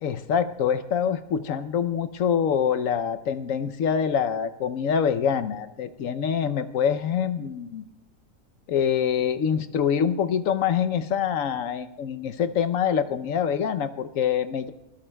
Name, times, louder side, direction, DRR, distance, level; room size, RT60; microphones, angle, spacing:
voice 1, 0.0-7.8 8.7-14.7, left 7 dB, 65° left, 11 dB, 1.0 m, -25 dB
24.0 x 19.5 x 2.2 m, 0.94 s
omnidirectional pair, 1.6 m